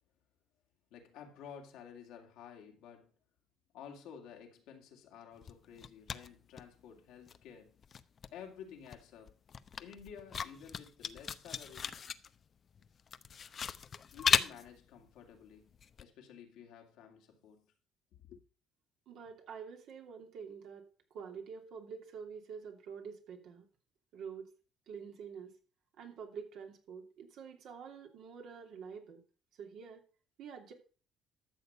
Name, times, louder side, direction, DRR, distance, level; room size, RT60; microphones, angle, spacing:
voice 1, 0.9-3.1 3.7-7.8 8.3-9.3 9.8-11.9 14.1-17.7 18.3-18.4, left 7 dB, 80° left, 2.4 m, -52 dB
sound 1, 5.4-7.0 7.3-16.0, left 7 dB, 45° left, 0.7 m, -36 dB
voice 2, 19.1-23.7 24.1-24.5 24.9-25.6 25.9-29.2 29.5-30.0 30.4-30.7, right 6 dB, 70° right, 2.8 m, -47 dB
13.0 x 6.9 x 5.5 m
supercardioid pair, 75°, 0 cm